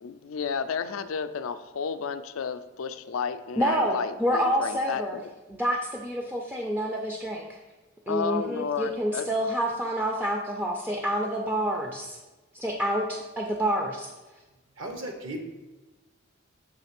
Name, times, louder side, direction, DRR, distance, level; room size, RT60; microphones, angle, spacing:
voice 1, 0.0-5.3 8.1-9.3, left 6 dB, 80° left, 11 dB, 0.4 m, -32 dB
voice 2, 3.6-5.2 5.6-7.6 8.1-12.2 12.5-14.1, equal, 10° right, 0 dB, 0.4 m, -28 dB
voice 3, 14.8-15.4, right 1 dB, 65° right, 3 dB, 0.9 m, -35 dB
7.0 x 3.2 x 5.8 m, 1.1 s
head